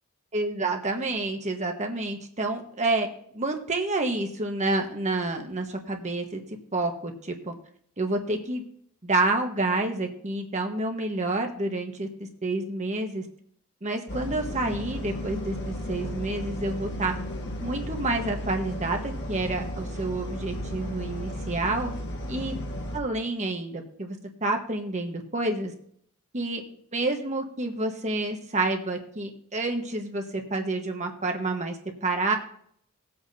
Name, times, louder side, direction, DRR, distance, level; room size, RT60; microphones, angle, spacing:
voice 1, 0.3-3.1 3.3-6.4 6.7-7.5 8.0-8.6 9.0-12.1 12.4-13.2 13.8-17.1 17.6-21.9 22.3-22.5 22.9-25.7 26.3-26.6 26.9-31.8 32.0-32.4, right 2 dB, 35° right, 3 dB, 1.4 m, -29 dB
sound 1, 14.1-23.0, left 1 dB, 55° left, 1.6 m, -34 dB
19.5 x 8.0 x 2.8 m, 0.65 s
head